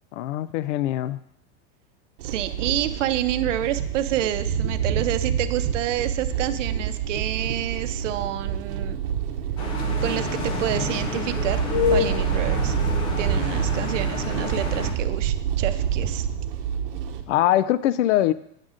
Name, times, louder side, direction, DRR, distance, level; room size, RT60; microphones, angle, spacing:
voice 1, 0.1-1.2 17.3-18.3, left 13 dB, 80° left, 16 dB, 0.5 m, -22 dB
sound 1, 2.2-17.2, right 8 dB, 50° right, 0.9 m, -27 dB
voice 2, 2.2-9.0 10.0-11.6 11.9-12.7 13.2-16.3, right 12 dB, 85° right, 10 dB, 0.7 m, -28 dB
sound 2, 9.6-14.9, left 5 dB, 15° left, 0.3 m, -28 dB
9.0 x 3.7 x 6.4 m, 0.73 s
supercardioid pair, 165°, 36 cm